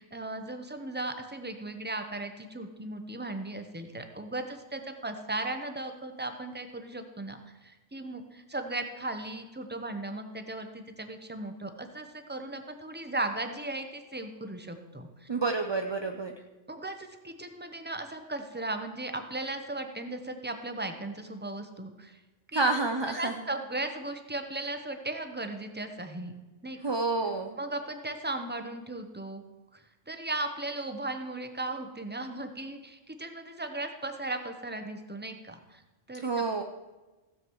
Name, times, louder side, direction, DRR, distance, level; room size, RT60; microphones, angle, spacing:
voice 1, 0.0-15.3 16.7-22.2 22.5-22.6 23.2-26.3 26.6-26.8 27.6-29.4 29.7-35.8 36.1-36.3, right 2 dB, 10° right, 7 dB, 0.8 m, -37 dB
voice 2, 15.3-16.3 22.5-23.4 26.8-27.6 36.1-36.6, right 3 dB, 30° right, 5 dB, 0.5 m, -29 dB
16.0 x 7.9 x 4.6 m, 1.2 s
omnidirectional pair, 1.3 m